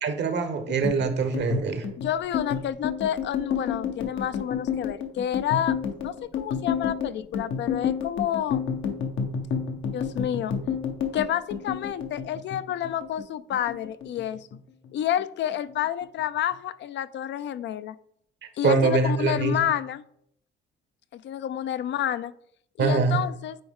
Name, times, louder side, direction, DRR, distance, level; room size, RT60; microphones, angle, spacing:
voice 1, 0.0-1.9 18.6-19.6 22.8-23.2, right 4 dB, 65° right, 9 dB, 1.0 m, -24 dB
sound 1, 0.7-13.3 13.5-14.6 14.8-15.2 15.5-16.2, left 7 dB, 80° left, 1.0 m, -30 dB
voice 2, 2.0-5.7 6.0-8.6 9.9-10.5 11.1-14.5 14.9-18.0 18.6-20.0 21.1-22.3 22.8-23.6, left 10 dB, 65° left, 14 dB, 0.4 m, -29 dB
9.0 x 3.2 x 3.6 m, 0.69 s
cardioid pair, 90°, 20 cm